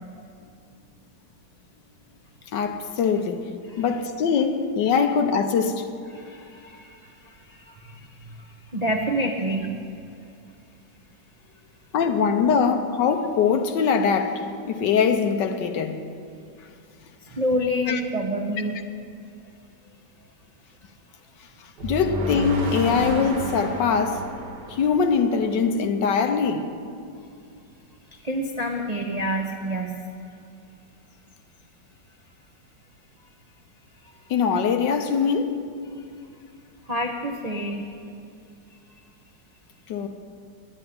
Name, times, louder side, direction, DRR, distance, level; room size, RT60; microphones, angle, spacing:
voice 1, 2.5-3.5 3.8-5.9 11.9-16.0 17.9-18.0 21.8-24.2 24.7-26.6 34.3-35.5 39.9-40.1, left 6 dB, 75° left, 1.4 m, -22 dB
voice 2, 6.1-9.8 17.3-18.7 28.1-30.1 36.9-37.9, equal, 40° right, 0.5 m, -28 dB
sound 1, 21.8-25.9, right 1 dB, 60° right, 2.1 m, -31 dB
10.0 x 9.0 x 9.5 m
omnidirectional pair, 2.0 m